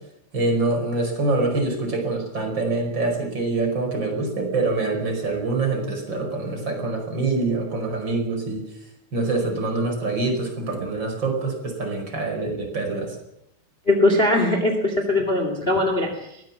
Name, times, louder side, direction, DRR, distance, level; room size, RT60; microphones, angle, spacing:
voice 1, 0.3-8.6 9.1-13.2, right 3 dB, 25° right, 2 dB, 5.2 m, -25 dB
voice 2, 13.8-16.4, left 1 dB, 25° left, 4 dB, 1.3 m, -21 dB
23.0 x 18.5 x 7.3 m, 0.78 s
omnidirectional pair, 5.8 m